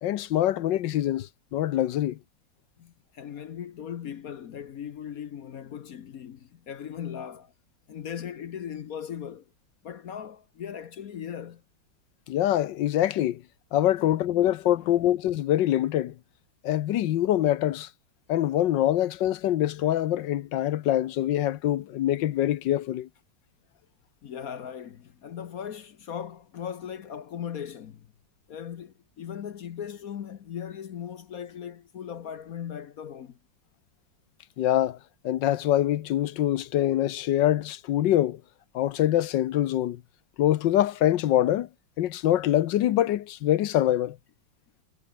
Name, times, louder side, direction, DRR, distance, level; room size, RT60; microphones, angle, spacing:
voice 1, 0.0-2.2 12.3-13.4 13.7-16.1 16.6-17.9 18.3-23.1 34.6-35.0 35.2-38.4 38.7-40.0 40.4-41.7 42.0-44.2, left 12 dB, 70° left, 1.4 m, -24 dB
voice 2, 2.8-7.5 7.9-9.4 9.8-11.6 14.0-14.1 14.8-14.9 24.2-28.1 28.5-33.4, left 8 dB, 55° left, 1.1 m, -38 dB
omnidirectional pair, 2.1 m